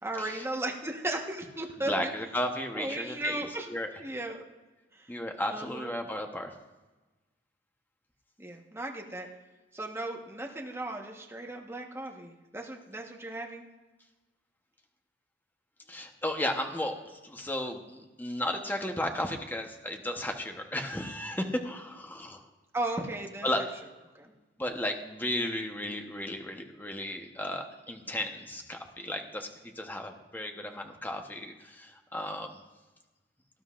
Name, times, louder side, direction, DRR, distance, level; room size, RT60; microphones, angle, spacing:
voice 1, 0.0-2.1 2.7-3.7 4.0-4.4 4.9-5.1 5.5-5.9 8.4-9.3 9.7-13.7 22.7-23.7 24.1-24.3, right 1 dB, 15° right, 1 dB, 1.3 m, -36 dB
voice 2, 1.9-3.9 5.1-6.5 15.9-22.5 23.4-23.7 24.6-32.6, left 1 dB, 10° left, 3 dB, 1.0 m, -34 dB
18.5 x 12.0 x 2.5 m, 1.2 s
head